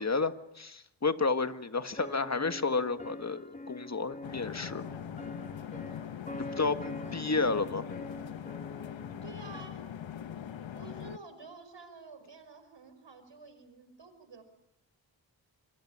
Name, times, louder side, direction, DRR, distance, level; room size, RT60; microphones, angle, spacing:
voice 1, 0.0-4.8 6.6-7.8, left 4 dB, 35° left, 10 dB, 1.7 m, -31 dB
sound 1, 2.0-9.6, left 2 dB, 15° left, 1.3 m, -45 dB
sound 2, 4.2-11.2, left 9 dB, 80° left, 1.2 m, -42 dB
voice 2, 6.4-7.4 9.2-9.9 10.7-14.4, right 4 dB, 70° right, 9 dB, 5.4 m, -50 dB
26.5 x 22.5 x 8.8 m, 0.84 s
cardioid pair, 65°, 45 cm